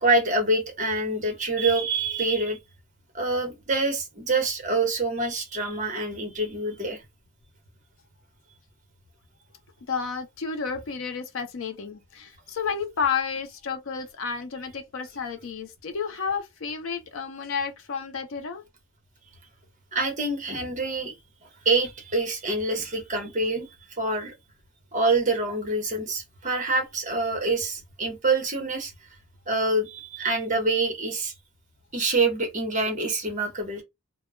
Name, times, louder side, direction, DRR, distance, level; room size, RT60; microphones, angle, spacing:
voice 1, 0.0-2.6 3.1-7.0 19.9-21.1 21.6-23.7 24.0-24.3 24.9-28.9 29.5-31.3 31.9-33.8, right 2 dB, 35° right, 0.8 m, -26 dB
voice 2, 9.9-18.6, left 6 dB, 65° left, 0.5 m, -31 dB
2.2 x 2.0 x 3.5 m
head